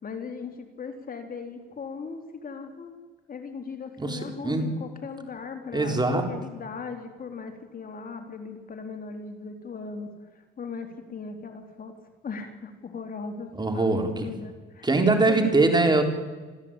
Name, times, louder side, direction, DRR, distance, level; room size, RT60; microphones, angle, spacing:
voice 1, 0.0-2.9 3.3-11.9 12.2-14.9 15.3-15.8, left 5 dB, 45° left, 5 dB, 3.7 m, -38 dB
voice 2, 4.0-4.6 5.7-6.3 13.6-14.3 14.8-16.0, right 3 dB, 20° right, 4 dB, 4.1 m, -22 dB
26.5 x 14.5 x 9.0 m, 1.4 s
cardioid pair, 90°, 20 cm